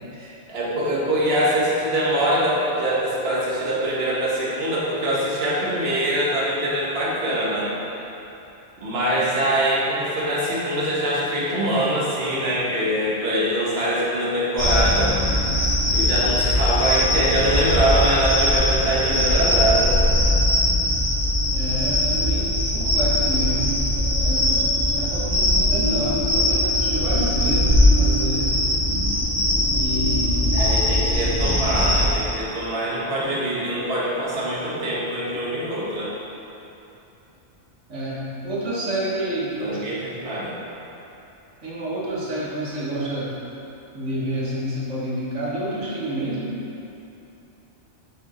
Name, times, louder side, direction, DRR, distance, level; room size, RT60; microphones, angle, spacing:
voice 1, 0.2-7.7 8.8-15.1 15.9-20.0 30.5-36.1 39.6-40.6, right 1 dB, 60° right, -7 dB, 1.6 m, -23 dB
sound 1, 14.6-32.1, left 1 dB, 35° right, 2.1 m, -20 dB
voice 2, 21.5-23.8 24.2-28.6 29.7-30.6 37.9-39.8 41.6-43.3 43.9-46.6, right 1 dB, 85° right, -6 dB, 1.7 m, -29 dB
7.9 x 6.4 x 4.3 m, 2.9 s
omnidirectional pair, 1.2 m